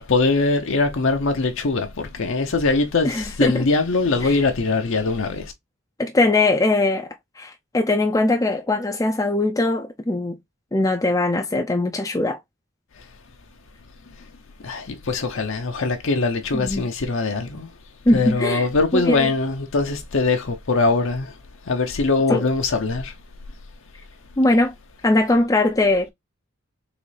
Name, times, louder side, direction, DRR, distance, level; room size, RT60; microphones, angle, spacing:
voice 1, 0.0-5.5 14.6-17.7 18.1-21.3 21.7-23.1, left 3 dB, 60° left, 0.7 m, -22 dB
voice 2, 3.0-3.7 4.2-4.4 6.0-10.4 10.7-12.4 16.5-16.9 18.1-18.7 18.9-19.3 22.3-22.4 24.4-24.7 25.0-26.1, left 2 dB, 15° left, 0.4 m, -21 dB
3.9 x 3.2 x 3.2 m
head